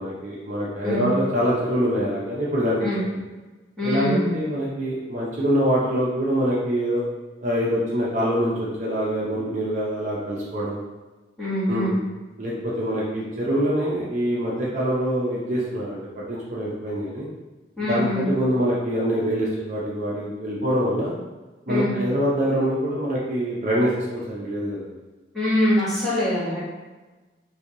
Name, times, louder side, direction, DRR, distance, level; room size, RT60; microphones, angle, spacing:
voice 1, 0.0-2.8 3.8-7.0 7.4-10.8 11.7-12.0 12.4-16.0 16.3-17.3 17.9-21.1 21.7-24.9, equal, 40° right, -6 dB, 0.6 m, -24 dB
voice 2, 3.8-4.4 11.4-12.0 17.8-18.3 21.7-22.0 25.3-26.6, left 1 dB, ahead, -11 dB, 1.3 m, -24 dB
3.1 x 2.6 x 3.7 m, 1.2 s
head